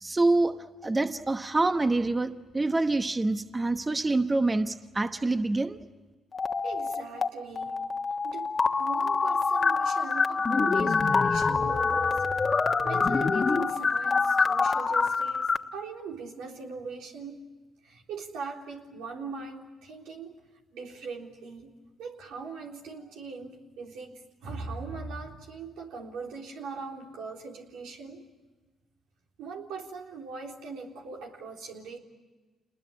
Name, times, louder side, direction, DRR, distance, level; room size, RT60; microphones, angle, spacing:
voice 1, 0.0-5.8, right 2 dB, 25° right, 8 dB, 1.1 m, -26 dB
sound 1, 6.3-7.3 7.6-15.6, left 4 dB, 40° left, 1.3 m, -25 dB
voice 2, 6.6-7.8 8.2-8.5 8.8-12.2 12.8-17.4 17.8-20.3 20.7-21.7 22.0-28.2 29.4-32.0, right 4 dB, 85° right, 0 dB, 3.6 m, -40 dB
28.0 x 21.0 x 8.7 m, 1.2 s
supercardioid pair, 70°, 0 cm